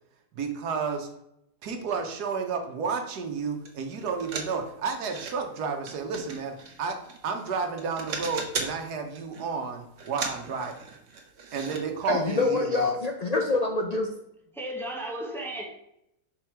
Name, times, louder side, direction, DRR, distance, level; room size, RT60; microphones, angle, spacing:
voice 1, 0.3-1.1 1.6-10.9 11.5-12.9, right 5 dB, 85° right, 5 dB, 1.5 m, -31 dB
sound 1, 3.7-3.8 4.0-5.3 5.9-7.5 7.8-8.8 9.2-9.5 10.0-11.8 12.1-12.2 12.6-12.7, right 4 dB, 55° right, 1.3 m, -37 dB
voice 2, 12.1-14.1, left 3 dB, 55° left, 2 dB, 0.4 m, -26 dB
voice 3, 14.5-15.9, right 1 dB, ahead, 1 dB, 0.8 m, -35 dB
6.2 x 4.7 x 4.5 m, 0.80 s
omnidirectional pair, 1.7 m